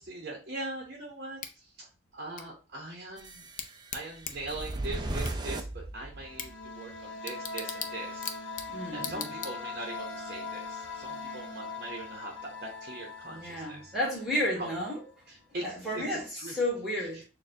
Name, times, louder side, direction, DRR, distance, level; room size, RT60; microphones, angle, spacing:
voice 1, 0.0-3.4 3.9-8.3 8.7-13.9 14.6-14.7 15.3-16.5 17.1-17.2, right 2 dB, 50° right, 0.7 m, -41 dB
Bicycle / Tick, 1.4-10.0, left 7 dB, 40° left, 0.4 m, -43 dB
sound 1, 3.2-6.6, right 1 dB, 20° right, 0.3 m, -37 dB
sound 2, 6.1-14.7, left 4 dB, 85° left, 0.8 m, -41 dB
voice 2, 8.7-9.3 13.2-15.0 15.6-17.2, left 1 dB, ahead, 1.3 m, -32 dB
6.3 x 2.1 x 2.6 m
head